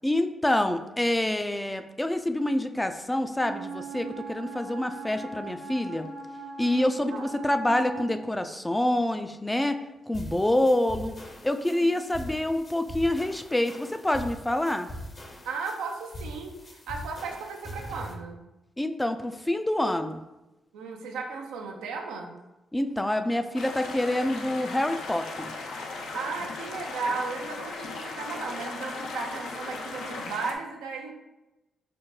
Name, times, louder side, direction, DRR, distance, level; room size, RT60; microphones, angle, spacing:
voice 1, 0.0-6.1 6.6-9.8 10.1-11.2 11.4-14.9 18.8-20.2 22.7-25.5, left 1 dB, 15° left, 8 dB, 0.3 m, -27 dB
Wind instrument woodwind instrument, 3.4-8.2, right 4 dB, 55° right, 0.8 m, -40 dB
sound 1, 10.1-18.1, equal, 45° left, 0.7 m, -42 dB
voice 2, 15.4-18.4 20.7-22.3 26.1-31.1, right 4 dB, 85° right, 2 dB, 0.4 m, -35 dB
sound 2, 23.5-30.5, left 3 dB, 80° left, 0.4 m, -37 dB
4.9 x 2.1 x 3.1 m, 1.0 s
supercardioid pair, 50°, 0 cm